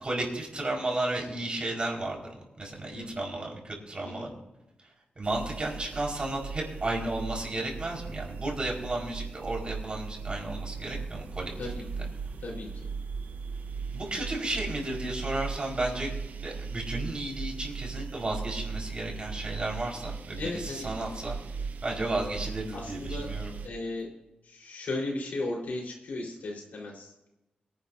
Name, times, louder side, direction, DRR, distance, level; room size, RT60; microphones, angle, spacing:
voice 1, 0.0-4.3 5.2-11.7 13.9-16.1 16.4-21.4 21.8-23.5, right 2 dB, 40° right, 0 dB, 4.7 m, -33 dB
voice 2, 2.9-3.2 4.0-4.3 11.6-11.9 12.4-12.7 20.4-20.9 22.7-23.3 23.6-24.1 24.4-27.3, left 2 dB, 80° left, -1 dB, 4.2 m, -36 dB
sound 1, 5.2-23.7, right 5 dB, 80° right, 0.9 m, -38 dB
23.5 x 11.0 x 2.7 m, 0.96 s
wide cardioid pair, 85°, 3 cm